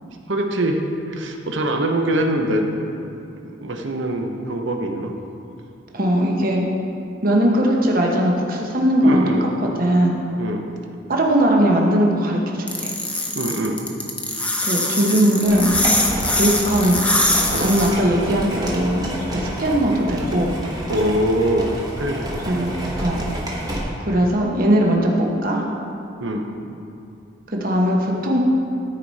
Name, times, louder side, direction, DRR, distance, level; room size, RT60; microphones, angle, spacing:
voice 1, 0.1-0.8 1.1-2.6 3.4-5.1 9.0-9.4 10.4-10.6 13.3-13.8 17.5-17.7 20.9-22.2 26.2-26.5, right 1 dB, 65° right, 3 dB, 0.8 m, -23 dB
voice 2, 5.9-6.6 7.2-9.2 9.8-10.1 11.1-12.9 14.6-15.8 16.4-17.0 17.6-19.0 19.3-20.5 22.5-23.3 24.0-25.6 27.5-28.4, right 1 dB, 45° right, -1 dB, 1.0 m, -19 dB
sound 1, 12.7-17.9, left 2 dB, 5° left, 0.5 m, -22 dB
sound 2, 15.5-23.8, right 1 dB, 20° right, 1.0 m, -29 dB
13.5 x 4.8 x 4.1 m, 2.6 s
head